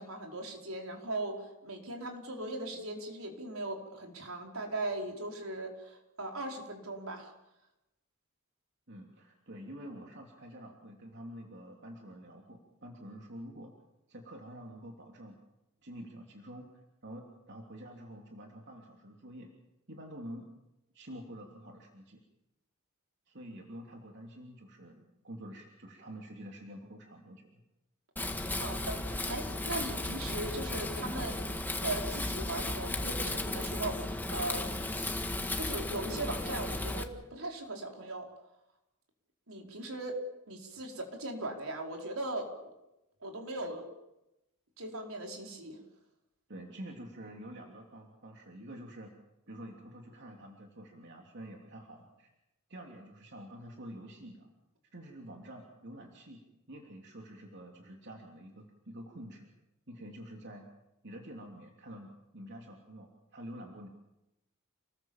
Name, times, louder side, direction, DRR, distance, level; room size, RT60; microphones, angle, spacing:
voice 1, 0.0-7.3 28.5-31.5 31.8-34.7 35.5-38.3 39.5-40.2 40.5-42.7 43.2-43.9 44.8-45.8, right 2 dB, 75° right, 2 dB, 5.0 m, -39 dB
voice 2, 8.9-13.7 14.1-15.4 15.8-16.7 17.0-19.5 19.9-20.4 20.9-22.2 23.3-27.6 46.5-49.1 49.5-52.3 52.7-54.5 54.9-56.4 56.7-59.5 59.9-60.6 61.0-63.9, equal, 55° right, 1 dB, 3.1 m, -48 dB
Wind, 28.2-37.0, left 2 dB, 10° left, 1.8 m, -35 dB
29.5 x 20.5 x 7.4 m, 0.91 s
head